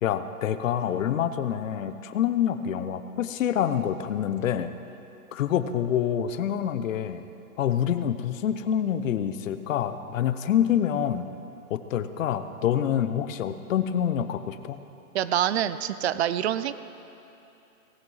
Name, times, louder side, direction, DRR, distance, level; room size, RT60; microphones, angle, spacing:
voice 1, 0.0-4.7 5.3-7.2 7.6-11.3 11.7-14.8, left 9 dB, 60° left, 11 dB, 0.9 m, -26 dB
voice 2, 15.1-16.7, right 11 dB, 45° right, 14 dB, 0.5 m, -26 dB
19.0 x 16.5 x 3.2 m, 2.9 s
hypercardioid pair, 130°, 45 cm